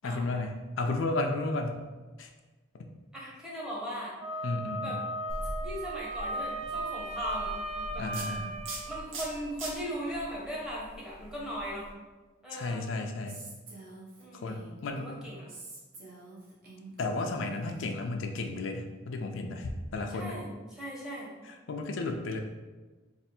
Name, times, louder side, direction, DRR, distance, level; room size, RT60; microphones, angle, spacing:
voice 1, 0.0-1.8 2.2-2.3 2.8-2.9 4.4-5.0 8.0-8.5 12.5-13.4 14.3-15.2 17.0-20.4 21.4-22.4, left 2 dB, 85° left, 3 dB, 0.4 m, -33 dB
voice 2, 3.1-4.1 4.8-5.0 5.6-8.1 8.8-11.9 12.4-12.9 14.2-14.5 15.0-15.5 20.1-21.3, equal, 5° right, -6 dB, 0.8 m, -38 dB
Wind instrument woodwind instrument, 4.2-9.0, right 1 dB, 30° right, 0.3 m, -36 dB
sound 1, 5.3-11.9, right 1 dB, 90° right, 0.7 m, -42 dB
Female speech woman speaking, 13.3-15.0 15.5-18.0, right 2 dB, 50° right, 0.8 m, -48 dB
3.3 x 2.4 x 4.3 m, 1.3 s
head